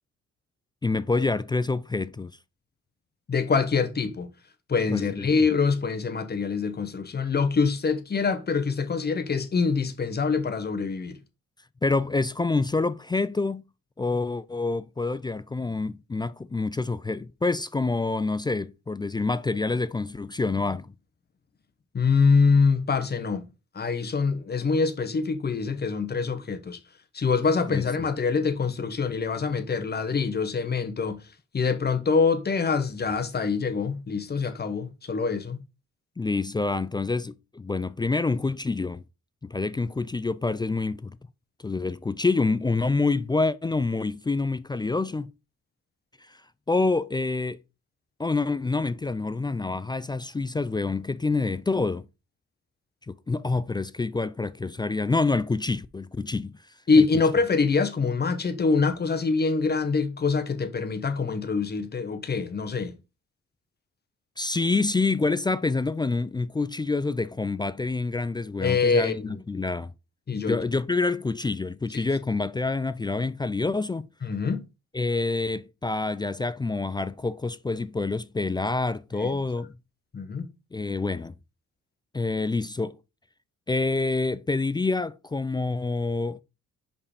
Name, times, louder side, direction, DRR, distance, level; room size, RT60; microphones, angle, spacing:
voice 1, 0.8-2.3 4.9-5.3 11.8-13.6 14.0-20.9 27.7-27.9 36.2-39.0 39.4-41.2 41.6-45.3 46.2-46.4 46.7-47.6 48.2-52.1 53.1-56.5 57.0-57.1 64.4-69.9 70.5-74.1 74.9-79.7 80.7-81.3 82.1-83.0 83.7-86.4, left 3 dB, 15° left, 0.4 m, -27 dB
voice 2, 3.3-4.3 4.7-11.2 21.9-23.5 23.7-26.8 27.1-31.2 31.5-35.6 56.9-62.9 68.6-69.4 70.3-70.5 71.9-72.0 74.2-74.6 79.2-79.4 80.1-80.5, left 4 dB, 35° left, 1.2 m, -25 dB
5.3 x 4.8 x 5.0 m
cardioid pair, 90°, 30 cm